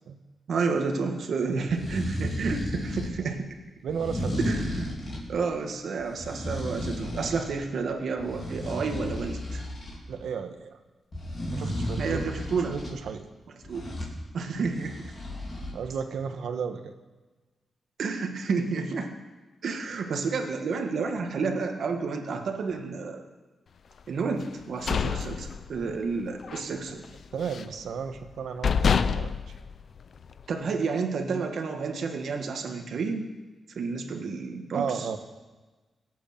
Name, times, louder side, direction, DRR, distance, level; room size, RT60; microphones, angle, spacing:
voice 1, 0.5-3.5 4.4-4.9 5.3-9.6 12.0-12.8 13.6-14.0 14.3-15.1 18.0-19.1 19.6-23.2 24.1-27.0 30.5-33.3 33.8-35.1, right 4 dB, 65° right, 4 dB, 1.8 m, -30 dB
sound 1, 1.6-3.2 3.9-5.3 6.0-7.5 7.9-10.0 11.1-12.9 13.6-14.2 14.6-15.7, left 1 dB, 30° left, 4.2 m, -33 dB
voice 2, 3.8-4.5 10.1-10.8 11.5-13.3 15.7-16.9 27.3-29.5 34.7-35.2, right 6 dB, 90° right, 7 dB, 1.3 m, -34 dB
sound 2, 24.5-26.1 26.4-26.7 27.0-27.8 28.3-28.4 28.6-30.5, left 6 dB, 50° left, 0.6 m, -27 dB
24.0 x 8.4 x 6.0 m, 1.2 s
wide cardioid pair, 155°, 0 cm